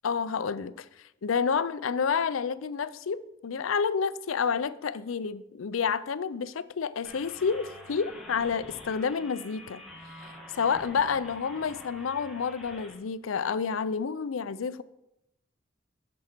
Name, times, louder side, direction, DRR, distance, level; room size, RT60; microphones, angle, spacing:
voice 1, 0.0-0.9 1.2-9.8 10.5-14.8, left 6 dB, 85° left, 0.5 m, -29 dB
sound 1, 7.0-12.9, left 1 dB, ahead, 2.2 m, -47 dB
13.5 x 6.2 x 4.5 m
head